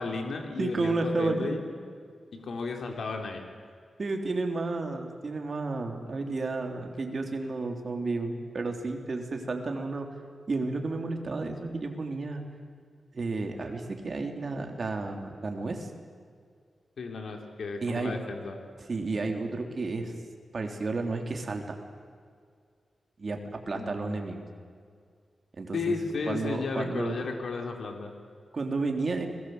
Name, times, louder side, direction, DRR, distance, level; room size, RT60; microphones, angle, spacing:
voice 1, 0.0-1.6 2.3-3.5 17.0-18.5 23.7-24.0 25.7-28.1, left 4 dB, 70° left, 3 dB, 3.3 m, -33 dB
voice 2, 0.6-1.6 4.0-10.1 10.5-12.4 13.1-15.9 17.8-18.2 18.9-20.1 20.5-21.8 23.2-24.5 25.6-26.0 26.3-27.2 28.5-29.3, right 3 dB, 45° right, 4 dB, 3.5 m, -32 dB
30.0 x 22.0 x 8.0 m, 2.1 s
wide cardioid pair, 115°, 0 cm